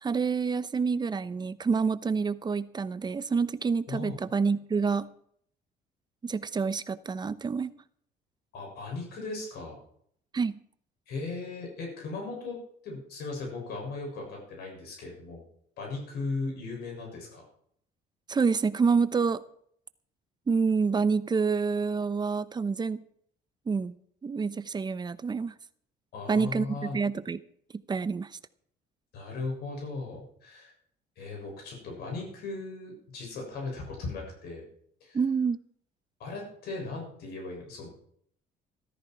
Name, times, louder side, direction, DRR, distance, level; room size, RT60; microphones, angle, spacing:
voice 1, 0.0-5.1 6.2-7.7 10.3-10.6 18.3-19.4 20.5-23.0 23.7-24.0 24.2-25.6 26.3-27.4 27.9-28.3 35.1-35.6, right 5 dB, 25° right, 15 dB, 0.8 m, -27 dB
voice 2, 8.5-9.8 11.1-12.6 12.8-15.4 15.8-17.4 26.1-27.0 29.1-30.7 31.2-34.6 35.0-35.2 36.2-37.9, left 3 dB, 70° left, 0 dB, 7.0 m, -37 dB
14.0 x 13.5 x 4.7 m, 0.65 s
cardioid pair, 110°, 17 cm